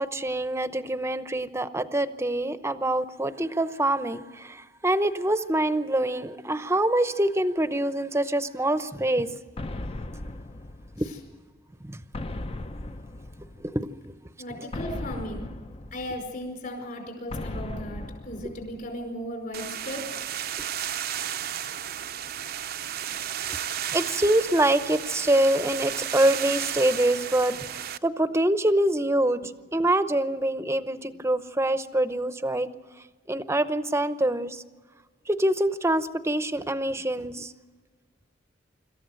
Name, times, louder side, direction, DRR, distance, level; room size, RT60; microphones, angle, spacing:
voice 1, 0.0-9.3 11.0-11.1 11.8-12.0 13.6-13.9 23.5-23.6 23.9-32.7 33.3-34.6 35.3-37.5, right 1 dB, 15° right, 12 dB, 0.8 m, -25 dB
sound 1, 9.6-11.3 12.1-13.9 14.7-16.5 17.3-19.1, left 2 dB, 30° left, 0.7 m, -37 dB
voice 2, 14.4-15.5 15.9-20.0, equal, 50° left, 3 dB, 5.0 m, -36 dB
sound 2, 19.5-28.0, right 10 dB, 55° right, 0.7 m, -33 dB
26.0 x 14.0 x 7.7 m, 1.5 s
head